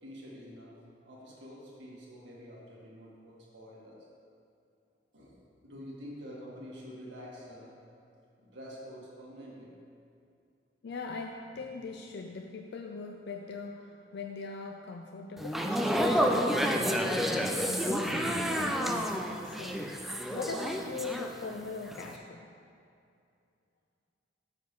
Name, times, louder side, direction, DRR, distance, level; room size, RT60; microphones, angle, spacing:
voice 1, 0.0-4.1 5.1-5.4 5.6-7.8 8.4-9.7, equal, 80° right, -5 dB, 1.8 m, -47 dB
voice 2, 10.8-22.5, left 4 dB, 65° left, 3 dB, 0.4 m, -41 dB
sound 1, 15.4-21.6 21.9-22.2, equal, ahead, 0.4 m, -30 dB
6.6 x 5.0 x 6.7 m, 2.5 s
head